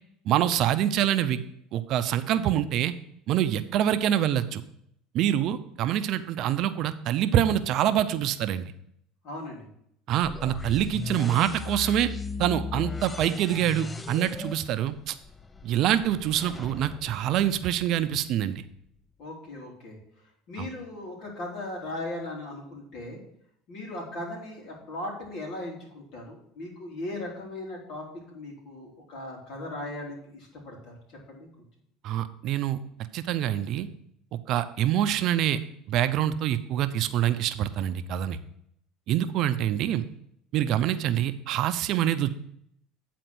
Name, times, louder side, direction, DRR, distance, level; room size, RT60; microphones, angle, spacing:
voice 1, 0.3-1.4 1.7-2.9 3.3-4.6 5.1-8.7 10.1-12.1 12.4-15.1 15.6-18.6 20.6-20.7 32.0-32.8 33.1-33.9 34.3-35.6 35.9-38.4 39.1-40.0 40.5-42.3, right 11 dB, 60° right, 12 dB, 0.6 m, -25 dB
voice 2, 9.2-9.7 19.2-20.0 20.5-23.2 23.7-30.9 31.3-31.5, left 1 dB, 60° left, -1 dB, 3.3 m, -38 dB
sound 1, 10.2-18.1, left 4 dB, 20° left, 0.4 m, -38 dB
9.2 x 4.3 x 6.1 m, 0.71 s
supercardioid pair, 95°, 0 cm